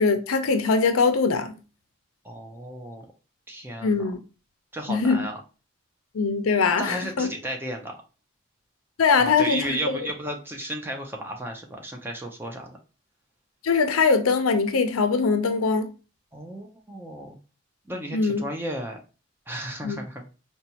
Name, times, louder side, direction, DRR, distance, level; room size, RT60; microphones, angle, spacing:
voice 1, 0.0-1.5 3.8-4.2 4.9-5.2 6.1-7.3 9.0-10.0 13.6-15.9 18.1-18.4 19.8-20.0, left 4 dB, 85° left, 0.5 m, -22 dB
voice 2, 2.2-3.1 3.5-4.1 4.7-5.4 6.8-7.9 9.2-12.7 16.3-17.4 17.9-19.0 19.5-20.3, right 1 dB, 10° right, 0.5 m, -34 dB
4.1 x 2.3 x 2.8 m
head